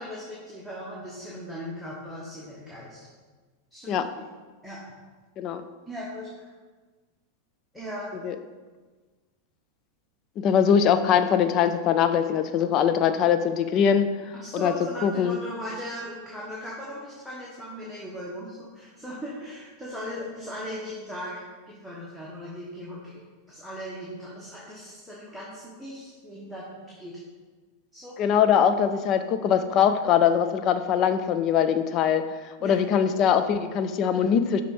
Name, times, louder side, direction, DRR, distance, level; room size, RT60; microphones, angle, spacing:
voice 1, 0.0-3.0 3.7-4.0 4.6-4.8 5.9-6.5 7.7-8.1 14.4-21.3 21.7-23.2 23.5-27.2 27.9-28.4 32.6-32.7, equal, ahead, -7 dB, 1.2 m, -38 dB
voice 2, 10.4-14.1 14.5-14.7 15.0-15.4 28.2-34.6, left 8 dB, 40° left, 9 dB, 0.4 m, -22 dB
5.8 x 3.5 x 4.8 m, 1.4 s
figure-of-eight pair, 90°, 0 cm